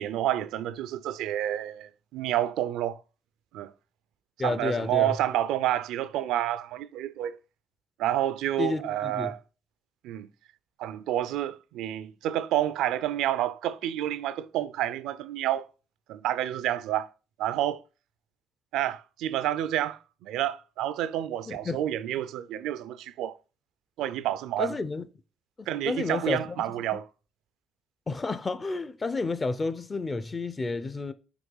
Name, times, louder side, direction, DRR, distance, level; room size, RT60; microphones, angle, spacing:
voice 1, 0.0-3.0 3.5-3.7 4.4-7.4 8.0-9.4 10.0-10.3 10.8-15.7 16.1-17.1 17.4-17.8 18.7-23.4 24.0-24.7 25.7-27.1, right 12 dB, 90° right, 0.4 m, -29 dB
voice 2, 4.4-5.1 8.6-9.3 21.5-21.8 24.6-25.1 25.6-26.6 28.1-31.1, left 3 dB, 30° left, 0.7 m, -31 dB
6.1 x 3.0 x 5.5 m
cardioid pair, 70°, 0 cm